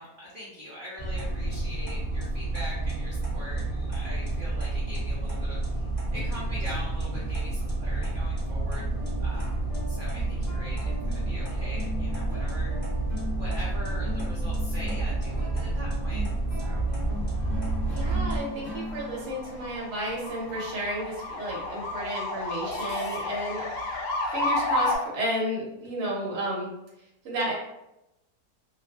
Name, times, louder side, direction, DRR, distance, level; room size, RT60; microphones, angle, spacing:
voice 1, 0.0-5.9 6.1-8.8 9.2-12.7 13.3-16.3 16.5-16.9, equal, 75° right, -6 dB, 0.4 m, -42 dB
sound 1, 1.0-18.4, right 2 dB, 10° left, 0.8 m, -29 dB
sound 2, 8.4-21.2, left 1 dB, 45° left, 0.6 m, -41 dB
sound 3, 17.1-25.0, left 2 dB, 70° left, 0.9 m, -32 dB
voice 2, 17.9-24.0 24.3-26.7 27.2-27.5, right 1 dB, 55° right, -5 dB, 0.9 m, -32 dB
2.5 x 2.2 x 2.3 m, 0.89 s
omnidirectional pair, 1.6 m